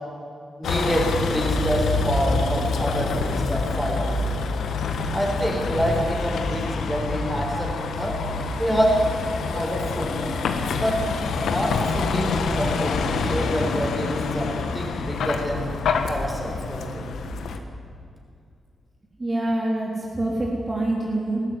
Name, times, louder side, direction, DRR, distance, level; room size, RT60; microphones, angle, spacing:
Vehicle, 0.6-17.6, left 4 dB, 90° left, 1.6 m, -26 dB
voice 1, 0.6-4.1 5.1-8.2 8.6-9.0 9.5-10.2 10.8-11.0 11.4-15.6 16.1-17.0, equal, 5° right, -1 dB, 6.1 m, -26 dB
voice 2, 19.2-21.4, right 1 dB, 30° right, -3 dB, 3.6 m, -25 dB
19.5 x 14.0 x 9.8 m, 2.4 s
cardioid pair, 80°, 0 cm